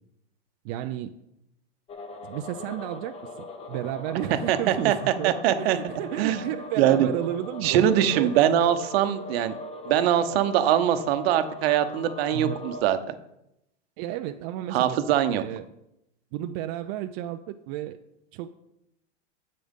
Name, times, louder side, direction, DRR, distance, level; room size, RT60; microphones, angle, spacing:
voice 1, 0.6-1.1 2.2-8.8 12.3-12.7 14.0-15.0 15.3-15.7 16.3-18.0 18.3-18.5, right 12 dB, 40° right, 7 dB, 0.4 m, -33 dB
sound 1, 1.9-12.8, left 2 dB, 15° left, 0.9 m, -40 dB
voice 2, 4.3-5.0 5.2-5.8 6.2-6.4 6.8-7.1 7.6-9.5 9.9-13.1 14.7-15.4, right 10 dB, 60° right, 10 dB, 0.9 m, -22 dB
9.3 x 7.7 x 3.6 m, 0.83 s
hypercardioid pair, 130°, 35 cm